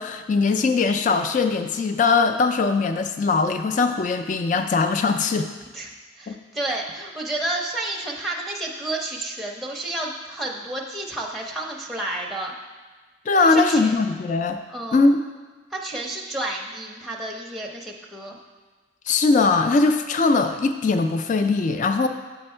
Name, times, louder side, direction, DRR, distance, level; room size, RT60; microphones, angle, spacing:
voice 1, 0.0-5.5 6.3-6.4 6.7-6.8 13.3-14.6 14.9-15.1 19.1-22.1, left 4 dB, 40° left, 8 dB, 0.3 m, -20 dB
voice 2, 6.2-12.6 13.4-13.9 14.7-15.1 15.7-18.4, right 2 dB, ahead, -1 dB, 0.6 m, -31 dB
8.0 x 4.5 x 4.4 m, 1.4 s
head